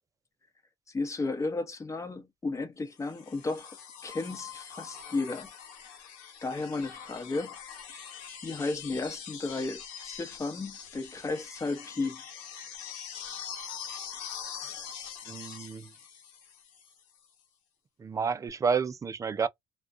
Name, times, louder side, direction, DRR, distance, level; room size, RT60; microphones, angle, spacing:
voice 1, 0.9-3.8 4.0-5.5 6.4-7.6 8.4-12.2, left 3 dB, 25° left, 0.9 m, -34 dB
sound 1, 3.0-17.0 18.5-18.6, left 8 dB, 80° left, 0.9 m, -43 dB
voice 2, 15.3-15.9 18.0-19.5, right 5 dB, 25° right, 0.4 m, -30 dB
2.3 x 2.2 x 2.5 m
supercardioid pair, 80°, 12 cm